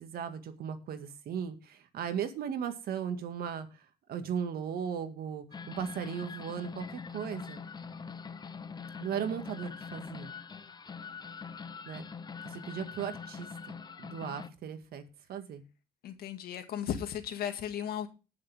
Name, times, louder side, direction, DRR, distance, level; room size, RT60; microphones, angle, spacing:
voice 1, 0.0-6.9 7.1-7.6 9.0-10.3 11.9-12.0 12.4-13.7 14.0-15.0 15.3-15.6, right 8 dB, 65° right, 2.0 m, -37 dB
sound 1, 5.5-14.5, left 5 dB, 25° left, 0.7 m, -43 dB
voice 2, 16.0-18.1, left 9 dB, 65° left, 2.0 m, -35 dB
19.0 x 6.8 x 3.6 m
cardioid pair, 110°, 17 cm